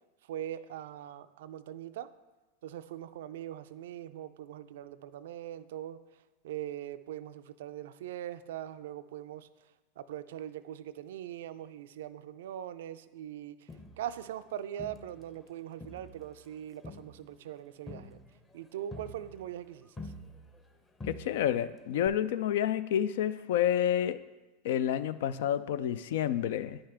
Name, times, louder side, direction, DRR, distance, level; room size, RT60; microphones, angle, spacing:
voice 1, 0.2-2.1 2.6-6.0 6.4-9.5 10.0-13.7 14.0-18.2 18.5-20.1, right 11 dB, 70° right, 13 dB, 0.3 m, -41 dB
Crowd, 13.7-15.5 15.8-20.7 21.0-21.7 22.0-22.1, left 2 dB, 20° left, 0.8 m, -48 dB
voice 2, 21.1-24.2 24.6-26.8, left 10 dB, 70° left, 14 dB, 0.3 m, -29 dB
9.8 x 5.5 x 3.4 m, 1.1 s
hypercardioid pair, 90°, 0 cm